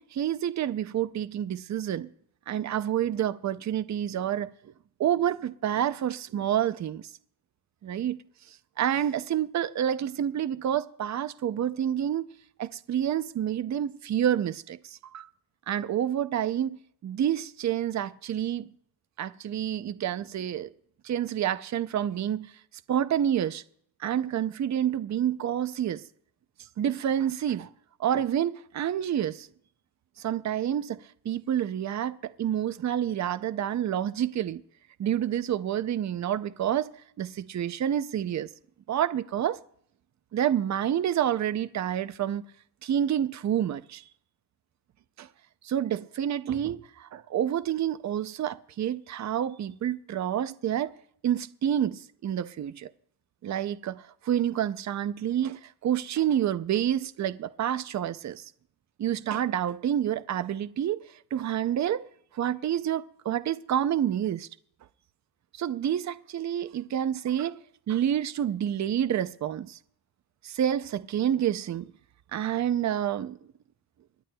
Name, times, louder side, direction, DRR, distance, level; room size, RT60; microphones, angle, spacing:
voice 1, 0.0-2.1 2.5-4.7 5.0-7.0 7.8-8.2 8.8-12.2 12.6-15.3 15.7-18.7 19.2-20.7 21.0-22.5 22.9-23.6 24.0-26.0 26.8-27.7 28.0-29.5 30.2-34.6 35.0-36.9 37.2-38.5 38.9-39.6 40.3-42.4 42.8-44.0 45.2-45.3 45.6-50.9 51.2-52.9 53.4-58.4 59.0-61.0 61.3-62.1 62.3-64.5 65.5-67.6 67.9-69.8 70.4-71.9 72.3-73.4, right 10 dB, 45° right, 0.4 m, -28 dB
27.0 x 10.5 x 2.2 m
wide cardioid pair, 170°, 39 cm